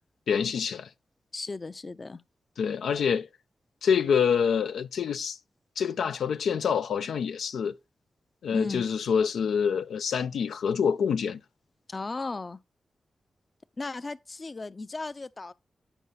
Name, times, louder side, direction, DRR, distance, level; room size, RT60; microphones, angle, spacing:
voice 1, 0.3-0.9 2.6-3.3 3.8-5.4 5.8-7.8 8.4-11.4, left 7 dB, 85° left, 0.4 m, -26 dB
voice 2, 1.3-2.2 8.5-8.9 11.9-12.6 13.8-15.5, left 3 dB, 45° left, 0.6 m, -35 dB
9.1 x 5.6 x 4.0 m
cardioid pair, 45°, 0 cm